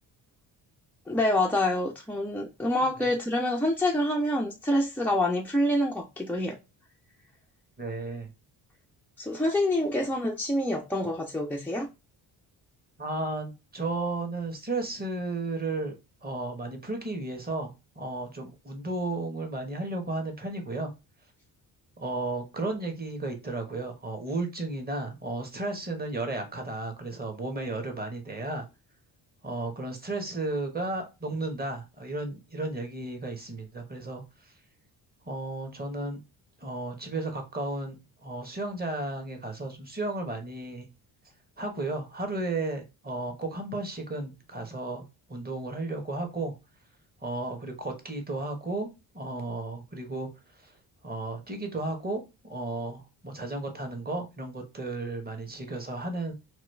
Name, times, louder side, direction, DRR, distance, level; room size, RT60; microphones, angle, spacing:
voice 1, 1.1-6.6 9.2-11.9, left 1 dB, 5° left, 0.4 m, -27 dB
voice 2, 7.8-8.3 13.0-15.9 16.2-20.9 22.0-28.7 29.4-34.5 35.3-36.2 36.6-38.0 38.2-40.9 41.6-45.0 45.3-46.5 47.2-48.9 49.1-50.3 50.5-50.7 51.0-56.3, right 2 dB, 20° right, 1.1 m, -34 dB
3.0 x 2.4 x 3.2 m
supercardioid pair, 60°, 47 cm